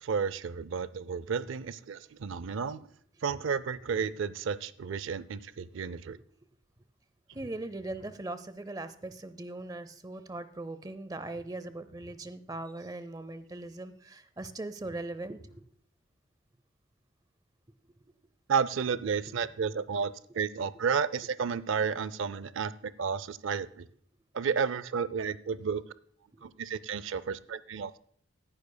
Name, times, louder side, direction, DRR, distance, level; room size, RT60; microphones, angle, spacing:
voice 1, 0.0-2.8 3.2-6.2 18.5-23.9 24.3-25.8 26.4-28.0, right 6 dB, 70° right, 17 dB, 0.4 m, -32 dB
sound 1, 3.3-4.2 7.3-8.2 11.3-12.2 14.8-15.7, equal, 70° left, 4.5 m, -55 dB
voice 2, 7.3-15.6 26.3-26.5, right 2 dB, 20° right, 13 dB, 0.5 m, -40 dB
17.0 x 9.8 x 2.2 m, 0.63 s
head